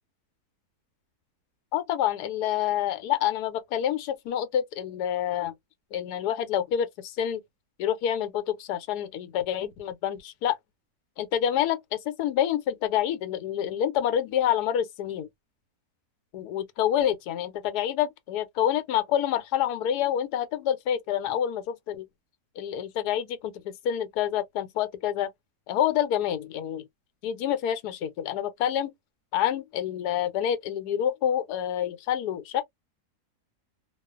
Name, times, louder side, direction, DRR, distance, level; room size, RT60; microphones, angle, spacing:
voice 1, 1.7-5.5 5.9-7.4 7.8-10.6 11.2-15.3 16.3-22.1 22.6-25.3 25.7-26.9 27.2-28.9 29.3-32.6, left 10 dB, 90° left, 1.2 m, -27 dB
2.4 x 2.3 x 2.3 m
omnidirectional pair, 1.6 m